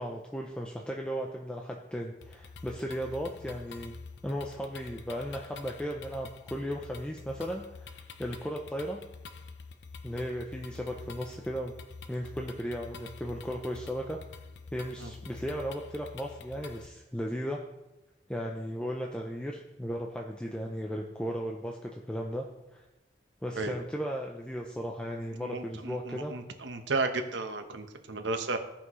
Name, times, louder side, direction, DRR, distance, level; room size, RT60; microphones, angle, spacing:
voice 1, 0.0-3.9 4.2-9.0 10.0-11.7 12.1-14.2 14.7-17.6 18.3-22.5 22.7-22.8 23.4-26.3, equal, 5° left, 0 dB, 0.5 m, -36 dB
sound 1, 2.2-16.9, left 4 dB, 70° left, 0.6 m, -47 dB
voice 2, 25.4-28.6, right 3 dB, 75° right, 6 dB, 1.0 m, -33 dB
16.5 x 5.7 x 3.1 m, 0.98 s
head